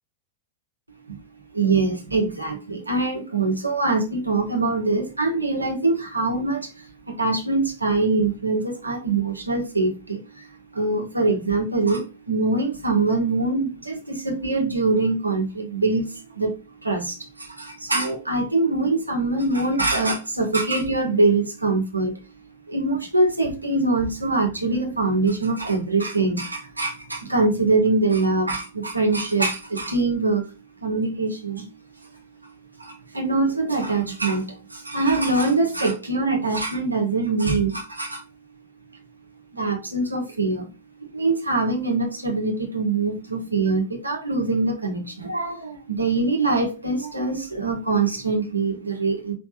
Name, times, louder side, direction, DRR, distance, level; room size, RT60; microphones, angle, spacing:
voice 1, 1.5-10.5 10.7-22.2 22.7-30.5 30.8-31.7 32.4-32.5 32.8-38.2 39.5-40.7 41.0-49.3, right 3 dB, 85° right, 1.4 m, -23 dB
5.3 x 3.5 x 2.8 m
figure-of-eight pair, 95°, 0 cm